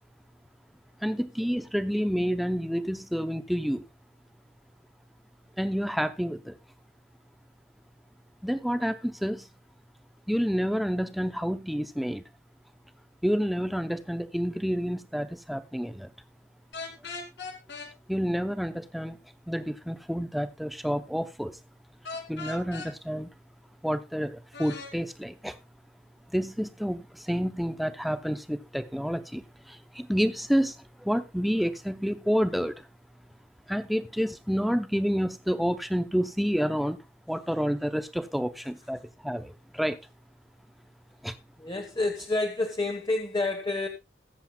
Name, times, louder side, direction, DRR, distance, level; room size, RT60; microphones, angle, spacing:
voice 1, 1.0-3.8 5.6-6.6 8.4-9.5 10.3-12.2 13.2-16.1 18.1-19.2 19.5-21.5 22.3-23.3 23.8-25.6 26.3-32.9 33.7-37.0 37.3-40.0 41.2-41.4, equal, ahead, 0.6 m, -29 dB
sound 1, 16.7-17.9 22.0-22.9 24.5-24.9, left 4 dB, 85° left, 2.5 m, -38 dB
voice 2, 41.6-43.9, left 2 dB, 25° left, 1.1 m, -29 dB
21.5 x 7.6 x 2.3 m
head